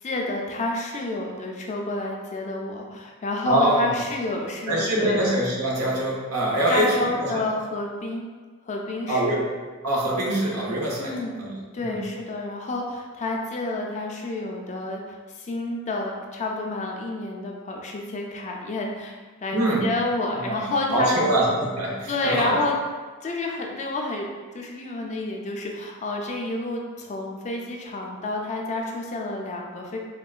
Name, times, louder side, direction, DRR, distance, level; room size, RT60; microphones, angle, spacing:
voice 1, 0.0-5.2 6.7-8.3 8.7-9.3 11.0-11.3 11.7-21.3 22.1-22.7 23.2-30.0, left 2 dB, 30° left, 0 dB, 0.3 m, -29 dB
voice 2, 3.4-3.9 4.7-7.4 9.1-9.4 9.8-12.0 19.5-19.8 20.3-22.6, right 1 dB, 90° right, -4 dB, 0.8 m, -24 dB
3.6 x 2.2 x 2.3 m, 1.4 s
head